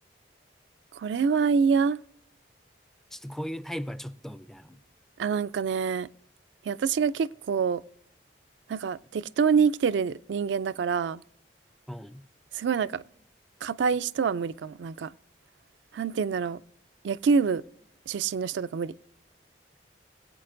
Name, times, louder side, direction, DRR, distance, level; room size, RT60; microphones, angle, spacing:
voice 1, 0.9-2.0 5.2-6.1 6.7-7.8 8.7-11.2 12.5-13.0 13.6-15.1 15.9-16.6 17.0-17.6 18.1-18.9, right 6 dB, 80° right, 0.4 m, -26 dB
voice 2, 3.1-4.8 11.9-12.2, equal, ahead, 0.3 m, -37 dB
21.5 x 8.6 x 2.5 m
head